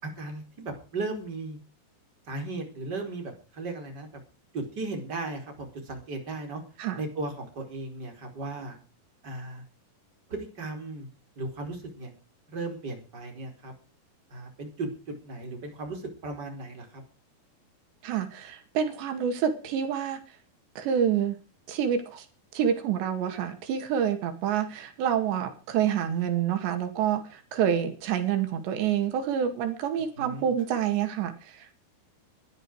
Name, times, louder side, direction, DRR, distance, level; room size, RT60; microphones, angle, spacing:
voice 1, 0.0-1.6 2.3-4.2 4.5-6.6 6.9-8.8 9.2-9.6 10.3-11.1 11.4-12.1 12.5-13.7 14.3-17.0 30.2-30.5, right 2 dB, 25° right, 3 dB, 5.0 m, -36 dB
voice 2, 18.0-20.2 20.8-21.4 21.7-22.3 22.5-31.7, right 8 dB, 90° right, 7 dB, 4.4 m, -27 dB
21.5 x 13.0 x 4.9 m, 0.35 s
omnidirectional pair, 4.9 m